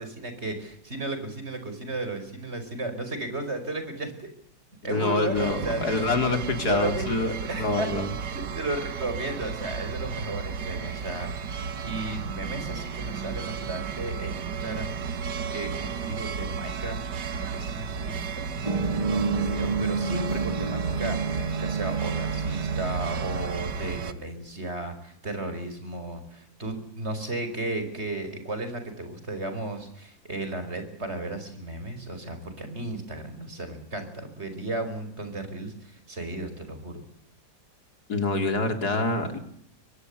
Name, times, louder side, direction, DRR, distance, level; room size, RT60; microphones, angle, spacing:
voice 1, 0.0-4.3 4.8-6.2 6.6-7.9 8.2-11.3 11.8-14.9 15.5-17.0 17.3-21.2 21.6-37.0, right 2 dB, 35° right, 9 dB, 5.4 m, -34 dB
voice 2, 4.8-7.3 7.6-8.1 38.1-39.4, left 3 dB, 55° left, 7 dB, 4.1 m, -26 dB
sound 1, 5.3-24.1, right 6 dB, 65° right, 1.9 m, -33 dB
sound 2, 18.6-23.7, right 4 dB, 20° right, 2.2 m, -29 dB
24.0 x 18.0 x 8.4 m, 0.70 s
omnidirectional pair, 2.0 m